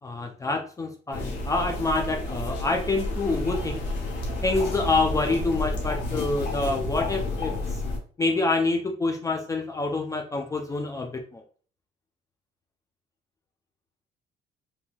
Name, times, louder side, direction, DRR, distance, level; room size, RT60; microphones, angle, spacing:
voice 1, 0.0-3.8 4.4-7.8 8.2-11.4, left 3 dB, 20° left, 3 dB, 0.4 m, -27 dB
sound 1, 1.1-8.0, left 1 dB, 90° left, 0.9 m, -31 dB
2.9 x 2.7 x 2.3 m, 0.42 s
cardioid pair, 110°, 17 cm